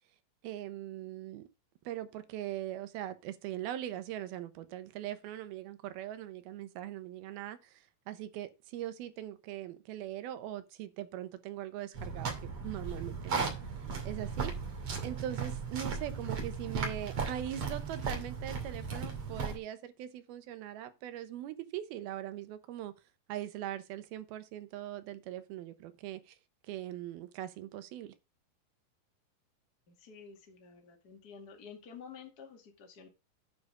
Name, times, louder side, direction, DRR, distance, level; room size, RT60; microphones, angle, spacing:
voice 1, 0.4-1.4 1.8-12.3 12.6-13.6 14.0-14.5 15.0-22.9 23.3-26.4 26.7-28.1, right 12 dB, 80° right, 2.8 m, -41 dB
sound 1, 11.9-19.6, right 5 dB, 40° right, 3.2 m, -36 dB
voice 2, 29.9-33.1, left 6 dB, 30° left, 2.2 m, -51 dB
9.6 x 5.1 x 6.4 m
omnidirectional pair, 4.4 m